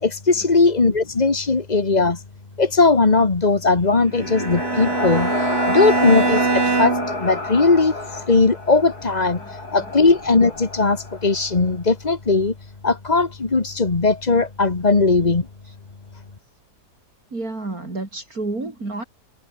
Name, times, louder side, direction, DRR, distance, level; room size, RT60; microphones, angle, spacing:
voice 1, 0.0-2.2 2.6-12.5 12.8-15.5, left 3 dB, 25° left, 1.5 m, -19 dB
sound 1, 3.7-11.6, left 2 dB, 65° left, 6.6 m, -29 dB
Bowed string instrument, 4.1-7.2, right 4 dB, 35° right, 1.9 m, -23 dB
voice 2, 17.3-19.0, right 2 dB, 55° right, 5.2 m, -30 dB
omnidirectional pair, 1.8 m